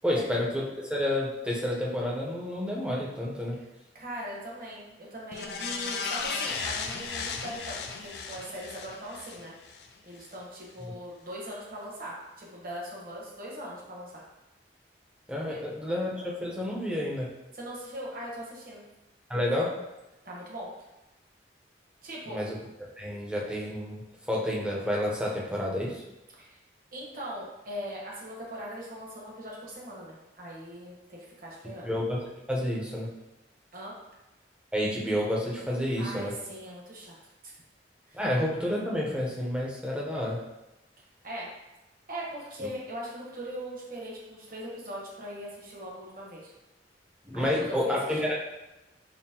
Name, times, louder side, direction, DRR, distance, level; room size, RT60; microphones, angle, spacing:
voice 1, 0.0-3.6 15.3-17.3 19.3-19.7 22.3-22.5 23.0-24.0 24.3-26.0 31.8-33.1 34.7-36.3 38.1-40.4 47.3-48.3, left 1 dB, 5° right, -4 dB, 0.6 m, -29 dB
voice 2, 3.9-9.5 10.0-14.2 15.5-15.6 17.5-18.8 20.2-20.7 22.0-22.4 26.4-26.6 26.9-31.9 33.7-34.0 36.0-37.1 37.4-37.5 38.1-38.2 41.2-41.5 42.1-46.5 47.3-48.3, equal, 50° right, -3 dB, 1.0 m, -40 dB
sound 1, 5.3-9.9 10.2-10.3, left 5 dB, 60° left, 0.3 m, -35 dB
5.4 x 2.0 x 2.8 m, 0.99 s
head